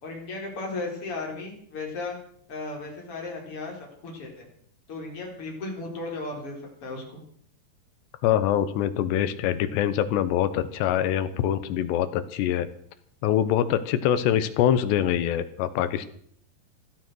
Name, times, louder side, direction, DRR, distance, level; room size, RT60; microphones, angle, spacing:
voice 1, 0.0-2.2 2.5-4.5 4.9-7.2, left 3 dB, 30° left, 0 dB, 4.6 m, -35 dB
voice 2, 8.2-12.7 13.2-16.1, left 10 dB, 75° left, 12 dB, 2.9 m, -24 dB
16.5 x 13.5 x 6.3 m, 0.63 s
omnidirectional pair, 5.4 m